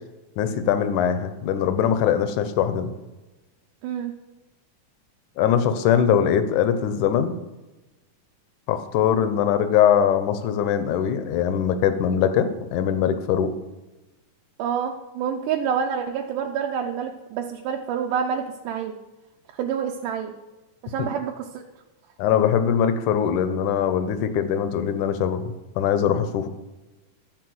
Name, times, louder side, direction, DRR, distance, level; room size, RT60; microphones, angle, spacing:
voice 1, 0.4-2.9 5.4-7.3 8.7-13.5 21.0-21.1 22.2-26.5, left 8 dB, 75° left, 10 dB, 2.2 m, -22 dB
voice 2, 14.6-18.9 19.5-20.3 20.8-21.6, right 7 dB, 85° right, 2 dB, 2.2 m, -27 dB
12.5 x 4.4 x 7.8 m, 1.1 s
omnidirectional pair, 3.7 m